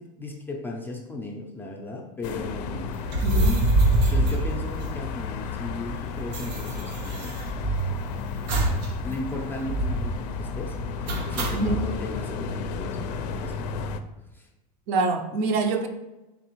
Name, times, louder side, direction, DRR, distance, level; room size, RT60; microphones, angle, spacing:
voice 1, 0.0-3.0 4.0-7.4 9.0-13.1 13.3-13.9 14.3-14.5, left 2 dB, 10° left, 0 dB, 0.4 m, -36 dB
sound 1, 2.2-14.0, left 5 dB, 75° left, 0.4 m, -33 dB
sound 2, 3.0-5.3 5.6-5.7 5.9-8.0 8.5-8.9 9.2-9.3 9.7-10.2 11.1-11.8, right 2 dB, 85° right, 0.8 m, -24 dB
voice 2, 3.2-3.6 11.5-11.8 14.9-15.9, right 3 dB, 55° right, 6 dB, 0.5 m, -25 dB
4.0 x 3.3 x 3.0 m, 1.0 s
supercardioid pair, 135°, 21 cm